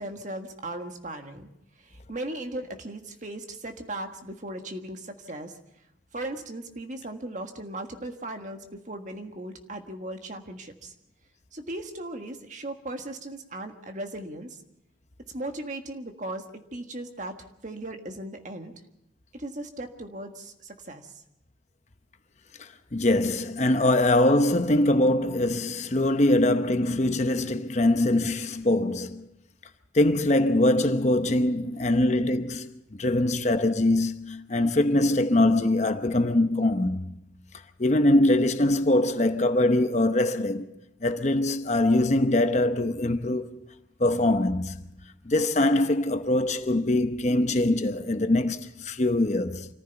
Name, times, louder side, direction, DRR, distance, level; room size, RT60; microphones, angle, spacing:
voice 1, 0.0-1.5 1.8-5.6 6.1-10.9 11.5-14.6 15.3-18.7 19.3-21.2, right 1 dB, 40° right, 1.6 m, -37 dB
voice 2, 22.6-29.3 29.9-37.0 37.8-40.7 41.0-43.5 44.0-44.8 45.3-49.7, left 1 dB, 35° left, 0.8 m, -23 dB
26.0 x 14.5 x 7.0 m
head